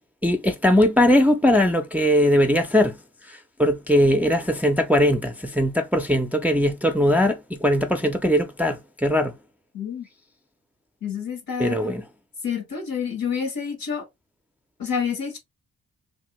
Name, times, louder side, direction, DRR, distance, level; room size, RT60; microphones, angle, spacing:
voice 1, 0.2-3.0 3.6-9.3 11.6-12.0, equal, 5° right, 0.4 m, -20 dB
voice 2, 9.7-10.1 11.0-12.0 12.4-14.0 14.8-15.4, left 7 dB, 70° left, 1.4 m, -28 dB
2.7 x 2.6 x 2.9 m
cardioid pair, 80°, 35 cm